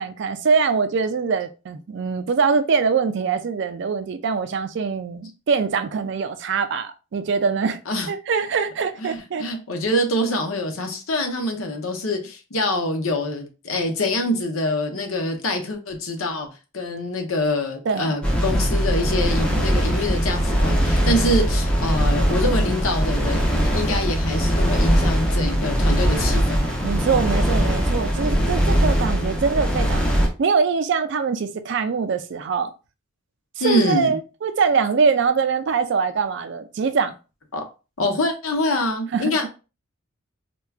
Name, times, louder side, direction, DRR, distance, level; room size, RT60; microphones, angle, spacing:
voice 1, 0.0-7.8 8.1-9.4 17.9-18.2 26.8-32.7 33.6-37.1 39.1-39.5, right 5 dB, 55° right, 0.3 m, -23 dB
voice 2, 9.0-16.5 16.7-26.7 29.3-29.4 33.6-34.2 37.5-37.6 38.0-39.5, left 1 dB, 75° left, 0.8 m, -25 dB
sound 1, 18.2-30.3, equal, 5° left, 0.5 m, -21 dB
4.4 x 2.2 x 2.3 m
head